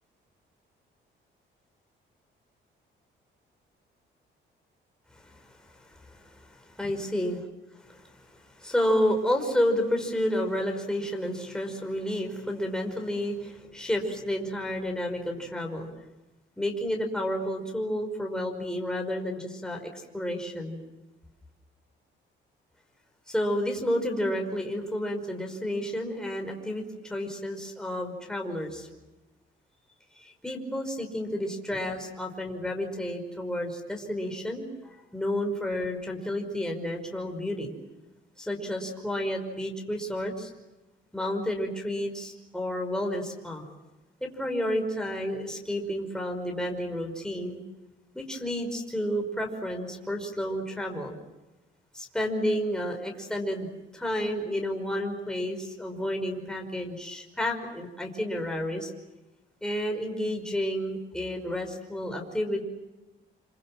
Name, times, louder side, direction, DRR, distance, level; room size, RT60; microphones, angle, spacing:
voice 1, 5.2-7.4 7.8-15.9 16.6-20.8 23.3-28.9 30.2-37.7 38.4-40.5 41.1-43.7 44.2-47.6 48.1-51.2 51.9-58.9 59.6-62.6, equal, 5° left, 2 dB, 5.3 m, -31 dB
27.5 x 25.0 x 7.5 m, 1.0 s
cardioid pair, 90°, 20 cm